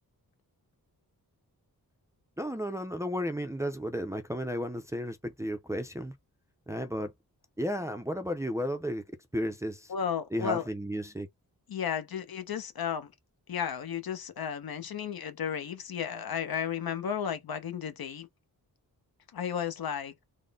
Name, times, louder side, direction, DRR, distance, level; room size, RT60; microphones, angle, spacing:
voice 1, 2.4-6.1 6.7-7.1 7.6-9.0 9.3-9.9 10.3-11.3, equal, 10° right, 0.4 m, -33 dB
voice 2, 9.9-10.6 11.7-13.1 13.5-18.3 19.3-20.1, left 8 dB, 75° left, 0.9 m, -33 dB
3.7 x 2.1 x 3.5 m
wide cardioid pair, 145°, 37 cm